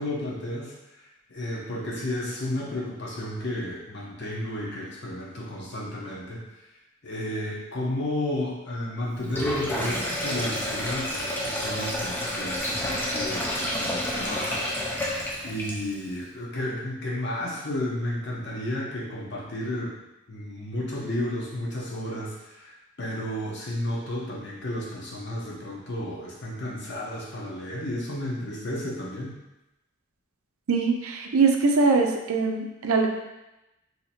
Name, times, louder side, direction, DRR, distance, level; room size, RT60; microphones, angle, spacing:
voice 1, 0.0-6.4 7.0-15.2 15.4-19.9 20.3-29.3, left 1 dB, 50° left, -4 dB, 0.9 m, -32 dB
Sink (filling or washing), 9.2-16.0, equal, 10° left, 0.5 m, -29 dB
voice 2, 30.7-33.1, right 4 dB, 80° right, 2 dB, 0.5 m, -22 dB
2.8 x 2.8 x 4.2 m, 0.97 s
head